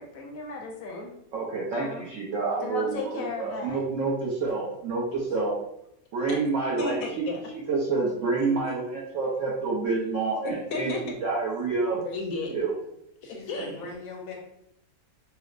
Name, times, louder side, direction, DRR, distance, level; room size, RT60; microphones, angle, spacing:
voice 1, 0.0-1.1 1.7-2.1 2.6-3.8 6.8-7.4 8.4-8.6 10.4-11.0 12.0-12.5 13.5-13.8, left 3 dB, 70° left, 0 dB, 0.9 m, -34 dB
voice 2, 1.3-5.5 6.1-7.2 7.5-12.0 12.5-12.7 13.5-13.7, right 4 dB, 60° right, -5 dB, 0.9 m, -28 dB
voice 3, 13.2-14.3, left 3 dB, 90° left, -2 dB, 1.5 m, -40 dB
5.8 x 2.0 x 2.4 m, 0.76 s
omnidirectional pair, 1.7 m